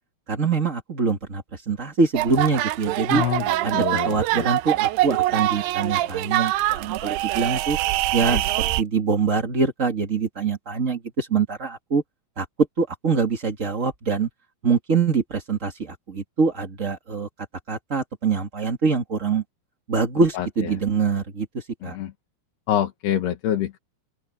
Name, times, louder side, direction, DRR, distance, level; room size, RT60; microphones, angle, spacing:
voice 1, 0.3-3.2 3.6-7.8 8.1-12.0 12.4-12.5 12.8-14.3 14.6-17.3 17.7-19.4 19.9-22.0, right 4 dB, 35° right, 1.2 m, -24 dB
sound 1, 2.1-8.8, right 16 dB, 85° right, 2.0 m, -24 dB
voice 2, 3.1-4.5 8.3-8.4 20.3-20.8 21.8-22.1 22.7-23.8, left 10 dB, 75° left, 3.7 m, -26 dB
open air
omnidirectional pair, 4.8 m